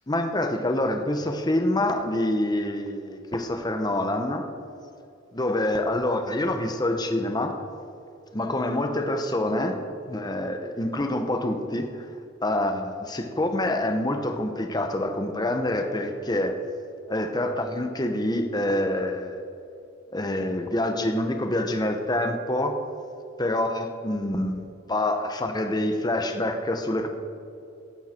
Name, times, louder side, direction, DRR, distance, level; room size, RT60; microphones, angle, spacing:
voice 1, 0.1-4.5 5.3-7.6 8.3-11.9 12.4-16.6 17.1-19.4 20.1-22.8 23.4-24.6 24.9-27.1, left 1 dB, 20° left, 5 dB, 1.0 m, -26 dB
16.0 x 11.5 x 4.5 m, 2.6 s
head